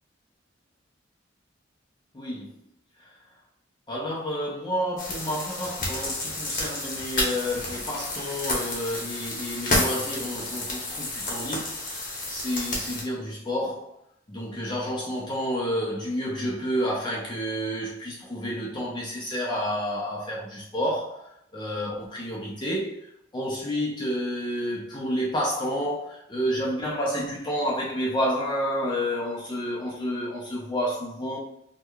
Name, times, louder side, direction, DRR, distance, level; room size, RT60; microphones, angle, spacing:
voice 1, 2.1-2.5 3.9-11.8 12.3-13.9 14.3-21.2 21.5-23.0 23.3-31.4, equal, 25° left, 0.5 m, -30 dB
sound 1, 5.0-13.0, left 1 dB, 45° left, 0.9 m, -30 dB
4.5 x 2.2 x 2.3 m
head